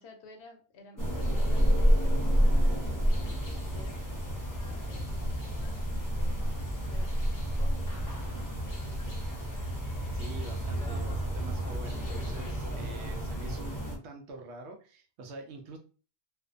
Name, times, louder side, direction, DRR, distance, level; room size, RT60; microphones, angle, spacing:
voice 1, 0.0-4.2 4.6-5.8 6.2-9.2, left 2 dB, 70° left, 3 dB, 0.9 m, -53 dB
sound 1, 1.0-14.0, equal, 30° left, 0.4 m, -29 dB
voice 2, 10.1-15.8, right 3 dB, 75° right, 4 dB, 0.9 m, -45 dB
2.5 x 2.1 x 2.4 m, 0.38 s
omnidirectional pair, 1.2 m